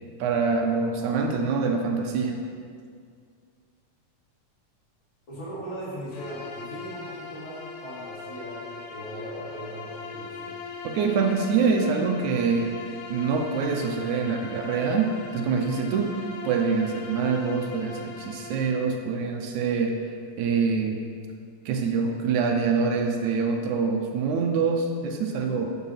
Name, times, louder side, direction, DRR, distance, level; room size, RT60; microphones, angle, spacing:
voice 1, 0.2-2.4 10.8-12.7 13.1-16.2 16.4-20.0 20.4-21.0 21.7-25.8, right 5 dB, 80° right, 3 dB, 2.1 m, -25 dB
voice 2, 5.3-10.5, right 1 dB, 40° left, -8 dB, 3.2 m, -38 dB
Bowed string instrument, 6.1-18.9, left 5 dB, 90° left, 2.5 m, -40 dB
11.0 x 4.9 x 5.7 m, 2.2 s
omnidirectional pair, 3.5 m